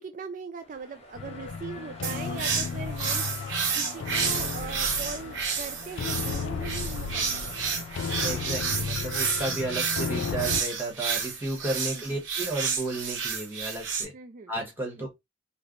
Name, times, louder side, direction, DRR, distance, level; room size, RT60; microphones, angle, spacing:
voice 1, 0.0-7.7 11.9-12.2 14.1-14.5 15.0-15.1, right 5 dB, 45° right, 0.3 m, -40 dB
sound 1, 0.6-8.6, left 2 dB, 30° left, 0.8 m, -47 dB
sound 2, 1.2-10.6, left 6 dB, 85° left, 0.3 m, -34 dB
sound 3, 2.0-14.0, right 6 dB, 90° right, 1.0 m, -30 dB
voice 2, 8.2-14.1 14.5-15.1, right 2 dB, 10° right, 1.2 m, -33 dB
3.2 x 2.1 x 3.8 m
head